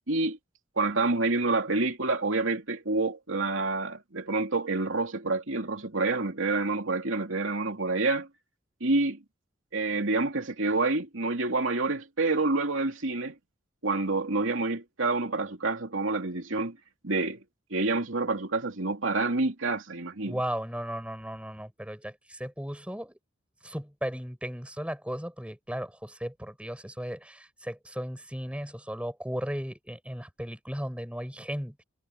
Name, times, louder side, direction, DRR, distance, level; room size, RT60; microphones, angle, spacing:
voice 1, 0.1-0.4 0.8-8.3 8.8-9.2 9.7-13.3 13.8-16.8 17.0-17.4 17.7-20.4, right 3 dB, 80° right, 2.8 m, -28 dB
voice 2, 20.2-23.2 23.6-31.8, equal, 5° right, 8.0 m, -36 dB
head